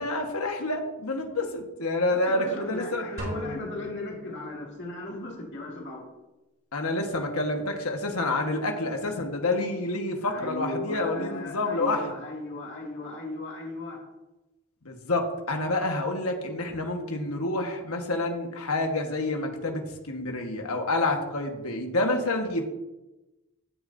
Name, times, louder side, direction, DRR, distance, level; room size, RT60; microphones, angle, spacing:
voice 1, 0.0-3.0 6.7-12.0 14.8-22.6, left 2 dB, 80° left, 3 dB, 1.4 m, -28 dB
voice 2, 2.1-6.1 10.2-14.0, left 1 dB, 55° left, -2 dB, 2.2 m, -37 dB
sound 1, 3.2-5.2, left 1 dB, 45° right, 3.4 m, -38 dB
15.5 x 6.4 x 2.7 m, 1.0 s
head